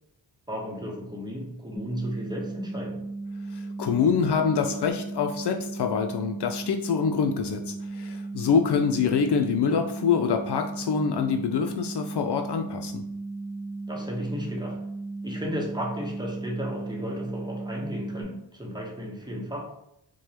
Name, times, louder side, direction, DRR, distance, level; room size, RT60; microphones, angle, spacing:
voice 1, 0.5-3.0 13.9-14.8 15.2-19.6, equal, 10° right, -1 dB, 1.0 m, -34 dB
sound 1, 1.7-18.2, right 3 dB, 30° left, 0.8 m, -36 dB
voice 2, 3.5-13.0, left 6 dB, 60° left, 5 dB, 0.5 m, -25 dB
4.6 x 2.2 x 2.9 m, 0.81 s
cardioid pair, 50°, 46 cm